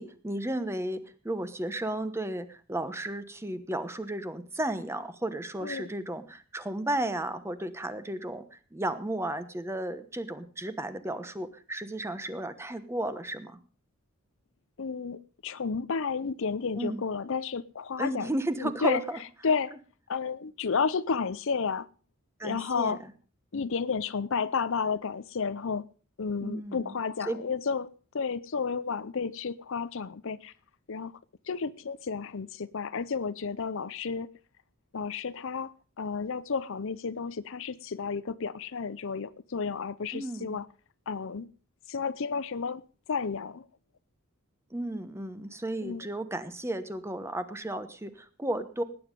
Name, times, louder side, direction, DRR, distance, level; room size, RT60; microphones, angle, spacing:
voice 1, 0.0-13.6 16.8-17.0 18.0-19.2 22.4-23.0 26.4-27.0 27.3-27.4 40.1-40.6 44.7-48.8, right 1 dB, 10° right, 1.0 m, -34 dB
voice 2, 14.8-18.3 18.6-19.0 19.4-19.7 20.1-21.9 22.4-23.0 23.5-25.9 26.2-27.9 28.1-30.5 30.9-31.1 31.5-34.3 34.9-40.7 41.1-41.5 41.9-42.8 43.1-43.7 45.8-46.1, left 5 dB, 65° left, 0.6 m, -32 dB
18.5 x 9.5 x 5.2 m
head